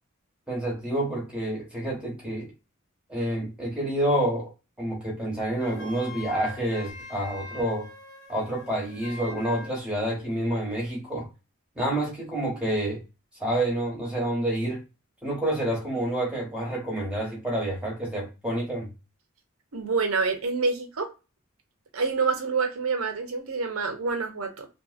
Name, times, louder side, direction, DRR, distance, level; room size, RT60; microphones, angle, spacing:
voice 1, 0.5-2.5 3.1-4.5 4.8-7.9 8.3-11.3 11.8-13.0 13.4-14.8 15.2-18.9, right 1 dB, 5° right, 1.0 m, -28 dB
Wind instrument woodwind instrument, 5.6-9.8, left 2 dB, 60° left, 1.0 m, -43 dB
voice 2, 19.7-21.1 21.9-24.7, right 4 dB, 85° right, 0.7 m, -27 dB
2.8 x 2.5 x 2.4 m
head